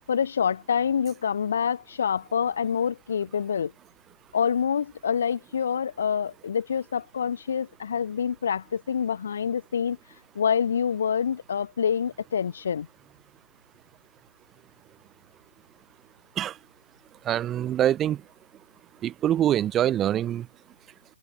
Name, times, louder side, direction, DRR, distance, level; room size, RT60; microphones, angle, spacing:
voice 1, 0.0-3.7 4.3-10.0 10.3-12.9, left 7 dB, 40° left, 0.8 m, -26 dB
voice 2, 17.2-18.2 19.0-20.5, right 11 dB, 10° right, 0.7 m, -24 dB
hypercardioid pair, 175°, 0 cm